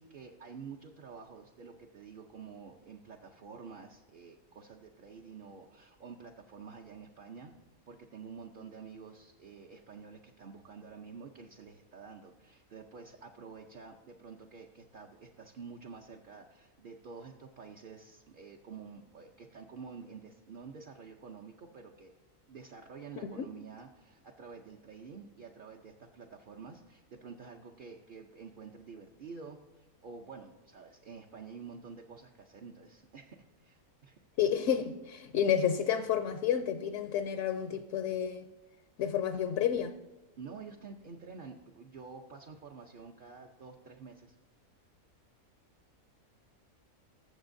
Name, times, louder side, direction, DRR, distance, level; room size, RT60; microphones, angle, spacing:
voice 1, 0.0-7.5 7.9-22.1 22.5-34.2 40.4-44.3, right 5 dB, 50° right, 0.7 m, -49 dB
voice 2, 34.4-38.5 39.0-40.0, left 9 dB, 65° left, 0.8 m, -30 dB
20.5 x 7.2 x 2.6 m
omnidirectional pair, 1.5 m